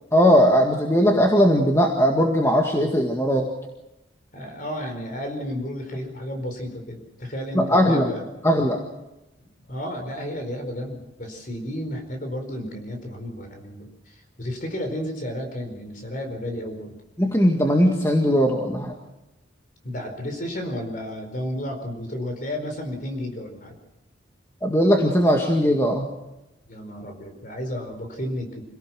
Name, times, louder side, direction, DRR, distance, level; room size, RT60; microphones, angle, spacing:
voice 1, 0.1-3.5 7.5-8.1 8.4-8.8 17.2-18.9 24.6-26.0, equal, 15° left, 2 dB, 1.8 m, -19 dB
voice 2, 4.3-8.2 9.7-17.0 19.8-23.8 26.7-28.7, equal, 40° left, 5 dB, 4.6 m, -32 dB
26.5 x 17.5 x 6.2 m, 0.97 s
head